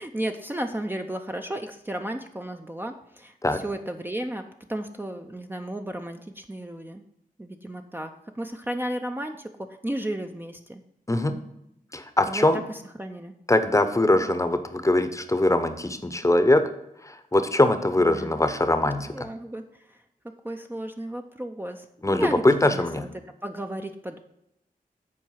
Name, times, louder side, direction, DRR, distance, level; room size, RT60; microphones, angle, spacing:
voice 1, 0.0-7.0 7.4-10.8 12.2-13.3 18.0-18.4 19.1-22.5 22.7-23.1 23.4-24.2, right 1 dB, 15° right, 4 dB, 0.6 m, -34 dB
voice 2, 11.9-12.6 13.5-16.6 17.1-19.1 22.0-23.0, left 1 dB, 20° left, 9 dB, 0.8 m, -22 dB
7.6 x 4.5 x 5.7 m, 0.83 s
cardioid pair, 60°, 15 cm